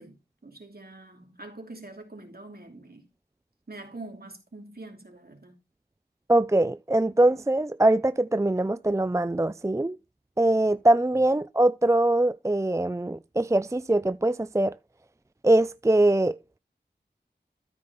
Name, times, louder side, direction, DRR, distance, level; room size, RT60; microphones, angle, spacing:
voice 1, 0.0-3.1 3.7-5.5, right 2 dB, 60° right, 2.8 m, -44 dB
voice 2, 6.3-10.0 10.4-14.7 15.4-16.4, right 1 dB, 15° right, 0.4 m, -22 dB
13.0 x 5.3 x 4.0 m
wide cardioid pair, 40°, 18 cm